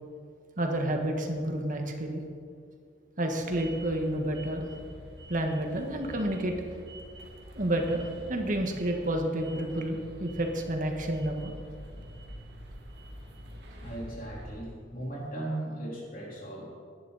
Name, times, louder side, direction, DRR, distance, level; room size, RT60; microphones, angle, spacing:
voice 1, 0.6-2.2 3.2-4.7 5.3-6.5 7.5-11.5, right 1 dB, 45° right, 3 dB, 1.5 m, -30 dB
sound 1, 3.4-14.6, equal, 65° right, 2.2 m, -46 dB
voice 2, 13.8-16.7, right 1 dB, 50° left, -4 dB, 3.7 m, -37 dB
18.5 x 11.0 x 4.1 m, 2.2 s
head